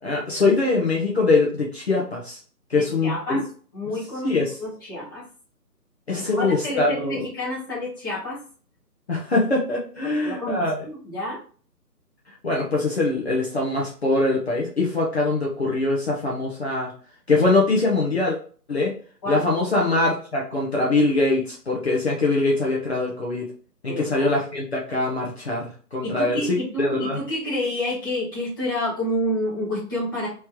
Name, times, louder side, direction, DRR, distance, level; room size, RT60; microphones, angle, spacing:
voice 1, 0.0-2.4 2.7-3.4 4.2-4.5 6.1-7.2 9.1-10.8 12.4-16.9 17.3-18.4 18.7-18.9 19.3-23.4 23.8-27.2, left 2 dB, 40° left, -3 dB, 0.8 m, -23 dB
voice 2, 2.7-3.5 3.7-4.3 4.6-5.2 6.1-8.4 10.0-11.4 19.2-19.5 23.9-24.3 26.0-30.3, left 1 dB, 15° left, -9 dB, 1.1 m, -29 dB
3.2 x 3.1 x 3.6 m, 0.43 s
figure-of-eight pair, 150°, 48 cm